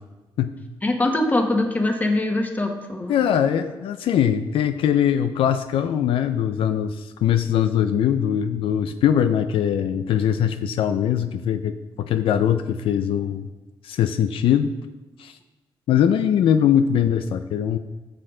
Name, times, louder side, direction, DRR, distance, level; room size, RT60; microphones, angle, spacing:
voice 1, 0.8-3.2, left 2 dB, 20° left, 3 dB, 1.4 m, -22 dB
voice 2, 3.1-13.4 13.8-14.7 15.2-15.3 15.9-17.8, left 9 dB, 80° left, 9 dB, 0.5 m, -21 dB
13.5 x 6.6 x 3.8 m, 1.2 s
cardioid pair, 105°, 9 cm